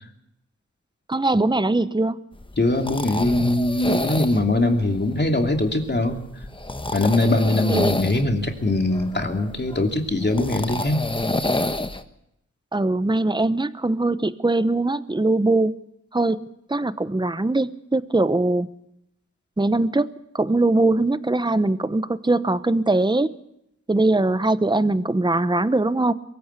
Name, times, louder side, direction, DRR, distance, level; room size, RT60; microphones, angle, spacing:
voice 1, 1.1-2.2 7.7-7.9 12.7-15.7 16.1-16.4 16.7-18.7 19.6-23.3 23.9-26.1, right 2 dB, 15° right, 14 dB, 0.9 m, -21 dB
sound 1, 2.4-12.0, left 2 dB, 15° left, 1.3 m, -29 dB
voice 2, 2.6-6.2 6.9-11.0, left 2 dB, 35° left, 3 dB, 2.9 m, -22 dB
23.0 x 15.5 x 8.3 m, 0.81 s
wide cardioid pair, 75°, 30 cm